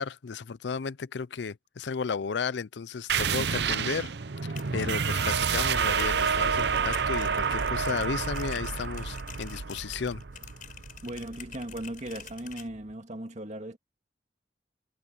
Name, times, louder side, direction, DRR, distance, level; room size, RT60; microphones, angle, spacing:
voice 1, 0.0-4.1 4.4-10.2, left 5 dB, 80° left, 0.5 m, -34 dB
sound 1, 3.1-12.3, right 6 dB, 70° right, 0.7 m, -29 dB
sound 2, 4.4-12.7, left 9 dB, 50° left, 5.1 m, -48 dB
voice 2, 11.0-13.8, right 1 dB, 40° right, 2.1 m, -37 dB
head